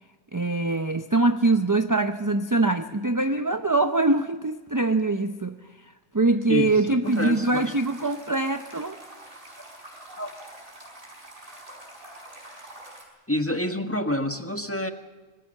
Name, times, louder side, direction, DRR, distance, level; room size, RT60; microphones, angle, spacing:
voice 1, 0.3-5.6 6.1-9.0, right 2 dB, 20° right, 8 dB, 0.5 m, -23 dB
voice 2, 6.5-7.7 10.2-10.3 13.3-14.9, left 1 dB, 10° left, 6 dB, 1.4 m, -28 dB
sound 1, 7.0-13.0, right 1 dB, 40° right, 5.7 m, -45 dB
26.0 x 20.0 x 6.6 m, 1.4 s
omnidirectional pair, 1.4 m